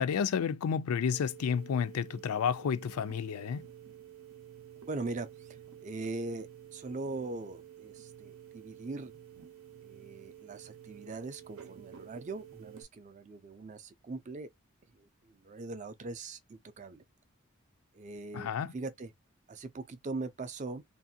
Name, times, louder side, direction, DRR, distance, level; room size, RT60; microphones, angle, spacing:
voice 1, 0.0-3.7 18.3-18.7, left 7 dB, 90° left, 0.4 m, -31 dB
sound 1, 1.1-12.8, right 10 dB, 85° right, 0.7 m, -51 dB
voice 2, 4.9-9.1 9.8-14.5 14.9-17.0 17.9-19.1 19.5-20.8, right 3 dB, 35° right, 0.4 m, -41 dB
2.8 x 2.6 x 2.6 m
head